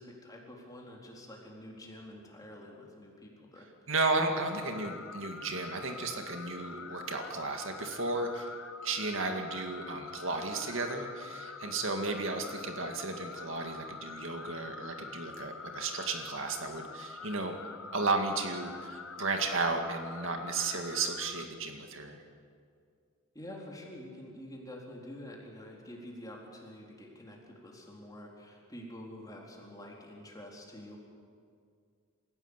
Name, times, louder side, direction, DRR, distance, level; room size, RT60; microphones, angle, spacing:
voice 1, 0.0-3.9 4.3-5.0 11.6-11.8 23.3-31.0, left 1 dB, 15° left, -1 dB, 3.9 m, -48 dB
voice 2, 3.9-8.6 8.8-17.5 17.9-22.2, right 3 dB, 65° right, 4 dB, 2.2 m, -34 dB
sound 1, 4.4-21.5, left 5 dB, 80° left, 1.2 m, -46 dB
28.0 x 16.0 x 8.2 m, 2.2 s
head